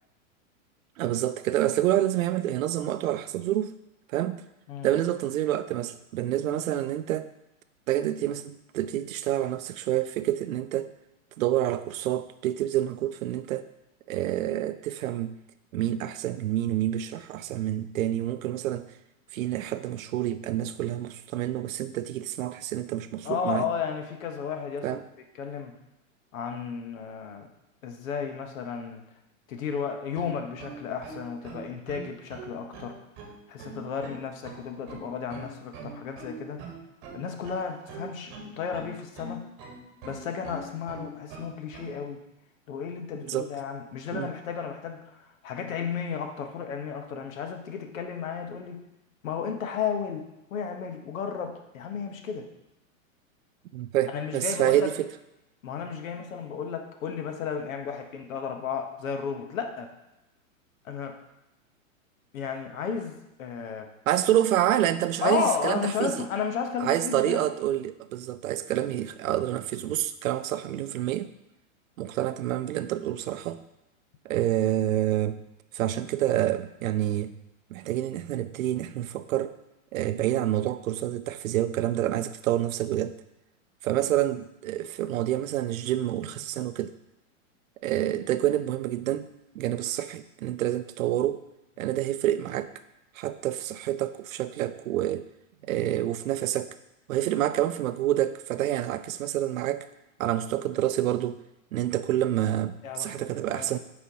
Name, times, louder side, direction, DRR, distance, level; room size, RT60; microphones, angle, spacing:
voice 1, 1.0-3.8 4.1-4.4 4.8-7.3 7.9-10.9 11.4-13.7 14.1-15.4 15.7-18.9 19.3-23.7 24.8-25.0 43.2-43.5 44.1-44.3 53.7-54.9 64.1-66.2 66.8-71.3 72.0-73.6 74.2-75.4 75.7-77.3 77.7-79.5 79.9-83.2 83.8-86.9 87.8-89.3 89.5-91.4 91.8-92.7 93.2-95.3 95.6-96.7 97.1-99.9 100.2-101.4 101.7-103.8, right 12 dB, 70° right, 12 dB, 0.5 m, -28 dB
voice 2, 23.2-25.0 25.3-25.8 26.3-27.5 27.8-29.0 29.5-33.0 33.5-36.6 37.1-39.5 40.0-42.2 42.7-48.8 49.2-52.5 54.1-54.9 55.6-59.9 60.8-61.2 62.3-63.9 65.2-67.5 102.8-103.7, left 6 dB, 70° left, 5 dB, 1.1 m, -33 dB
sound 1, 30.2-42.0, right 3 dB, 30° right, 1.2 m, -42 dB
8.6 x 4.4 x 2.8 m, 0.91 s
hypercardioid pair, 145°, 42 cm